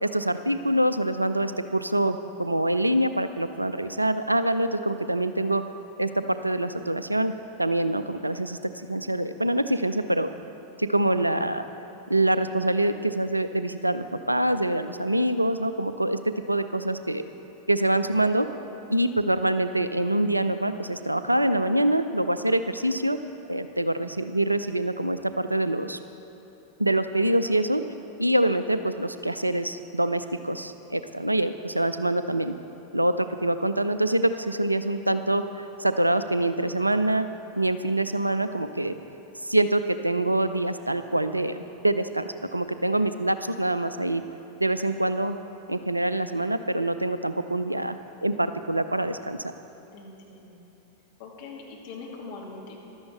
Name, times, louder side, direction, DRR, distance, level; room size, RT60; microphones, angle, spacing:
voice 1, 0.0-5.6 6.0-7.3 7.6-8.6 8.9-10.3 10.8-11.6 12.1-16.2 16.5-17.2 17.7-18.5 18.9-23.2 23.5-26.0 26.8-27.8 28.2-32.6 32.9-37.3 37.6-38.9 39.4-44.2 44.6-45.4 45.7-48.0 48.2-49.4, right 1 dB, 85° right, 11 dB, 0.5 m, -25 dB
voice 2, 49.9-50.6 51.2-52.8, left 4 dB, 50° left, -2 dB, 2.6 m, -42 dB
15.0 x 11.5 x 4.7 m, 2.9 s
figure-of-eight pair, 90°, 0 cm